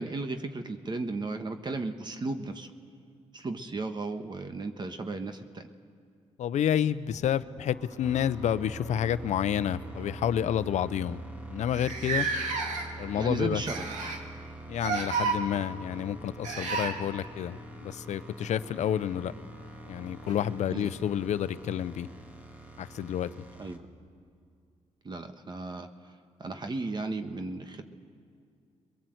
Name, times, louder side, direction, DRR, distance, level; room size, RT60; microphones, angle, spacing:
voice 1, 0.0-2.7 3.3-5.7 13.1-13.8 20.7-20.9 23.6-23.8 25.0-25.9 26.4-27.8, right 3 dB, 35° right, 7 dB, 1.4 m, -35 dB
voice 2, 6.4-11.2 11.5-12.3 13.0-13.6 14.7-19.3 19.9-22.1 22.8-23.3, left 10 dB, 75° left, 15 dB, 0.7 m, -29 dB
sound 1, 7.1-8.3 9.3-9.5 9.9-10.0 10.8-10.9 11.0-11.1 11.7-13.1 13.6-14.3 14.8-15.4 16.4-17.0 19.1-19.2 20.2-20.3, right 4 dB, 85° right, 2.2 m, -32 dB
sound 2, 8.0-23.8, right 1 dB, 15° right, 2.1 m, -44 dB
22.5 x 21.5 x 7.9 m, 2.3 s
cardioid pair, 70°, 12 cm